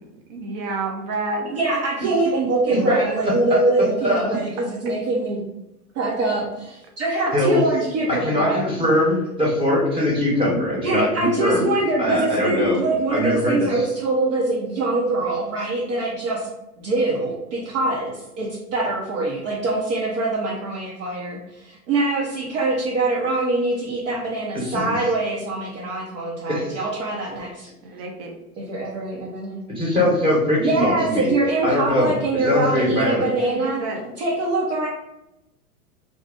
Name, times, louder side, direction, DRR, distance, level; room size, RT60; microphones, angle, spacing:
voice 1, 0.3-2.2 27.8-28.3 28.9-29.0 33.2-34.0, right 3 dB, 25° right, 2 dB, 0.3 m, -30 dB
voice 2, 1.5-5.4 5.9-8.6 10.8-16.5 16.8-27.7 28.6-29.6 30.6-33.8 34.2-34.9, right 2 dB, 55° right, -4 dB, 0.8 m, -24 dB
voice 3, 2.7-3.0 4.0-4.4 7.3-7.6 8.1-11.7 12.0-12.8 13.1-13.9 24.5-24.9 26.5-26.8 29.7-31.3 31.6-32.1 32.4-33.3, left 1 dB, 10° right, -4 dB, 1.0 m, -21 dB
2.6 x 2.2 x 3.6 m, 0.91 s
hypercardioid pair, 105°, 45 cm